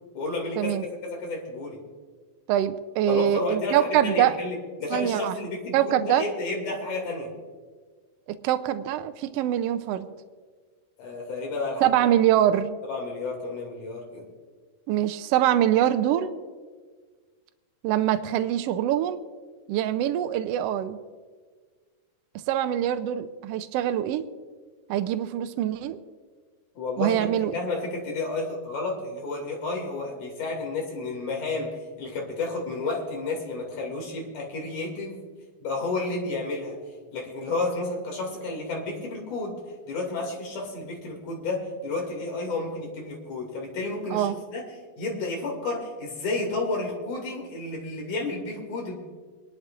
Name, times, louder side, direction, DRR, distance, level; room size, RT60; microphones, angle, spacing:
voice 1, 0.2-0.8 1.0-1.8 3.1-7.3 11.0-12.1 12.9-14.3 26.8-35.2 35.6-36.8 37.1-39.6 39.9-44.6 45.0-49.0, left 3 dB, 85° left, 0 dB, 3.9 m, -31 dB
voice 2, 2.5-4.4 4.9-5.3 5.7-6.2 8.4-10.1 11.8-12.8 14.9-16.3 17.8-19.2 19.7-21.0 22.5-24.2 24.9-26.0 27.0-27.5 44.1-44.4, right 11 dB, 85° right, 9 dB, 1.4 m, -24 dB
26.5 x 11.0 x 2.5 m, 1.5 s
omnidirectional pair, 3.5 m